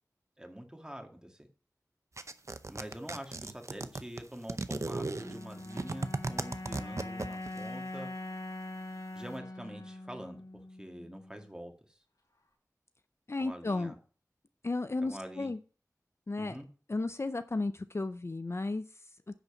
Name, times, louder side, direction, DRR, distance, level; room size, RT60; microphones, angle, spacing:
voice 1, 0.4-1.5 2.7-8.1 9.1-12.0 13.4-14.0 15.0-15.5 16.4-16.6, equal, 10° right, 5 dB, 1.9 m, -45 dB
sound 1, 2.2-7.6, right 3 dB, 50° right, 0.7 m, -36 dB
sound 2, 5.1-11.5, left 2 dB, 85° left, 3.6 m, -43 dB
voice 2, 13.3-13.9 14.6-15.6 16.3-16.6 16.9-18.8, left 2 dB, 45° left, 12 dB, 0.5 m, -33 dB
10.0 x 4.0 x 7.0 m, 0.40 s
wide cardioid pair, 45°, 6 cm